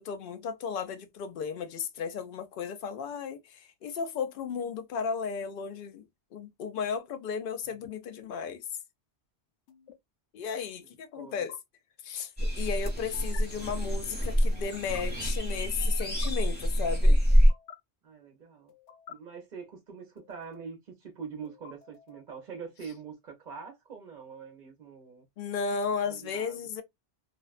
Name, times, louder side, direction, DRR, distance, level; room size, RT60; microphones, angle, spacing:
voice 1, 0.0-6.0 6.3-8.6 10.3-11.5 12.0-17.2 25.4-26.8, left 6 dB, 60° left, 0.6 m, -34 dB
sound 1, 7.6-7.9 9.7-9.9 11.3-11.6 13.1-13.4 14.5-15.0 15.8-16.3 17.3-17.8 18.7-19.1 20.2-20.7 21.4-22.3, left 8 dB, 90° left, 1.0 m, -51 dB
voice 2, 11.1-11.5 18.0-18.7 19.1-25.3 26.1-26.7, right 6 dB, 50° right, 0.8 m, -44 dB
sound 2, 12.4-17.5, equal, 10° left, 0.8 m, -25 dB
2.4 x 2.2 x 2.4 m
omnidirectional pair, 1.2 m